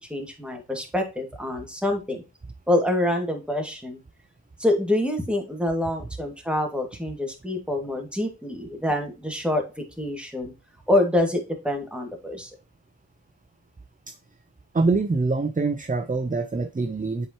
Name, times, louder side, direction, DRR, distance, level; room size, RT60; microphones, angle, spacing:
voice 1, 0.1-2.2 2.7-4.0 4.6-9.6 10.0-10.5 10.9-11.4 11.6-12.5, left 1 dB, 5° right, 2 dB, 2.1 m, -26 dB
voice 2, 14.7-17.3, right 3 dB, 20° right, 7 dB, 0.6 m, -24 dB
7.7 x 4.6 x 2.9 m, 0.29 s
cardioid pair, 50°, 37 cm